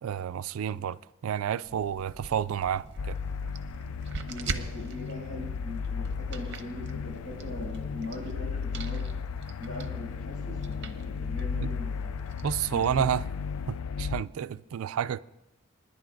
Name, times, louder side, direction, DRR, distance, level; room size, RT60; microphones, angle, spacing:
voice 1, 0.0-3.2 12.4-13.2 13.7-15.2, right 8 dB, 75° right, 0.3 m, -30 dB
sound 1, 1.6-13.8, right 3 dB, 55° right, 0.8 m, -43 dB
sound 2, 3.0-14.2, left 6 dB, 85° left, 0.3 m, -35 dB
voice 2, 4.3-9.0 9.6-12.2 12.7-13.0, left 1 dB, 60° left, 6.1 m, -41 dB
27.5 x 10.5 x 2.6 m
head